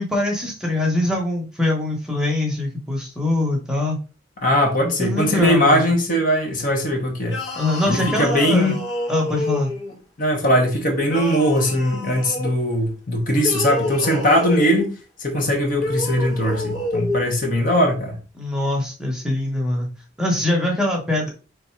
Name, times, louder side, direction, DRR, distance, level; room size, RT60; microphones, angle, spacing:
voice 1, 0.0-4.0 4.8-5.9 7.5-8.7 9.1-9.7 18.4-19.9 20.2-21.3, left 1 dB, 5° right, 0.9 m, -23 dB
voice 2, 4.4-7.4 7.9-8.8 10.2-14.9 15.2-18.2, equal, 45° left, 1.0 m, -20 dB
sound 1, 7.2-10.0 11.0-12.5 13.3-14.9 15.7-17.2, left 2 dB, 75° left, 1.5 m, -28 dB
3.4 x 2.6 x 4.4 m
head